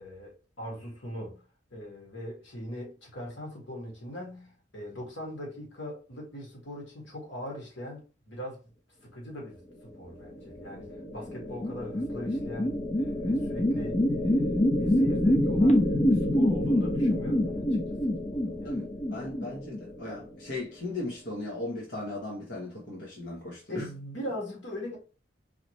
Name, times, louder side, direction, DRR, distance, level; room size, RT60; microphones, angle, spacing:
voice 1, 0.0-1.4 1.7-8.6 9.0-10.9 11.1-17.7 18.3-18.8 23.7-25.0, left 1 dB, 90° left, 1.9 m, -41 dB
sound 1, 10.5-20.2, left 1 dB, 35° left, 0.8 m, -26 dB
voice 2, 18.6-23.8, left 2 dB, 65° left, 1.1 m, -37 dB
4.8 x 2.7 x 3.1 m
head